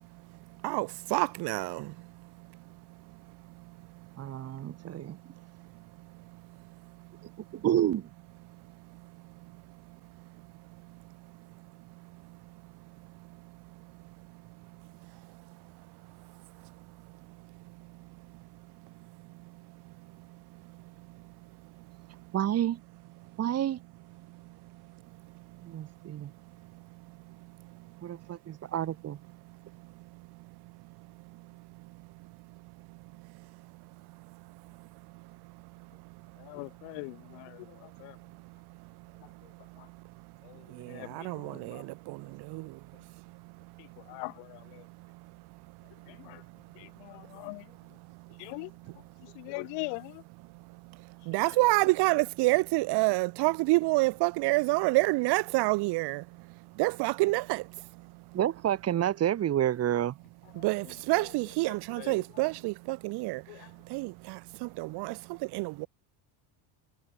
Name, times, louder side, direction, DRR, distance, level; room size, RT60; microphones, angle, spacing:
voice 1, 0.6-1.9 40.7-42.8 51.3-56.2 56.8-57.7 60.6-63.4 63.9-65.9, right 23 dB, 55° right, 3.5 m, -28 dB
voice 2, 4.2-5.2 7.5-8.1 22.3-22.8 23.4-23.8 25.6-26.3 28.0-29.2 58.3-60.2, right 11 dB, 30° right, 4.2 m, -29 dB
voice 3, 36.4-38.2 39.8-39.9 40.4-41.8 43.8-44.8 46.1-46.4 46.8-47.7 48.4-48.7 49.2-50.2 51.4-51.6 60.5-61.3 61.7-62.4 63.5-63.7, left 35 dB, 70° left, 4.9 m, -43 dB
cardioid pair, 175°, 46 cm